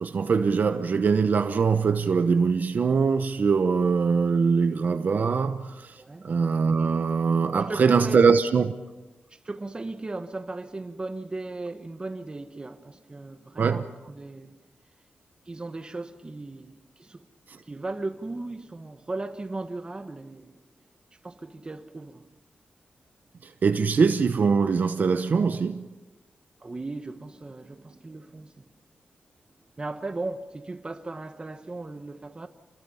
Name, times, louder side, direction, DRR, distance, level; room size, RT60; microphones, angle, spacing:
voice 1, 0.0-5.9 6.2-8.7 13.6-13.8 23.6-25.8, right 5 dB, 60° right, 0.9 m, -22 dB
voice 2, 6.0-6.3 7.5-8.3 9.3-14.5 15.5-17.3 17.6-20.6 21.2-22.3 26.6-28.7 29.8-32.5, right 2 dB, 25° right, 1.4 m, -37 dB
28.0 x 21.5 x 5.7 m
wide cardioid pair, 110°, 3 cm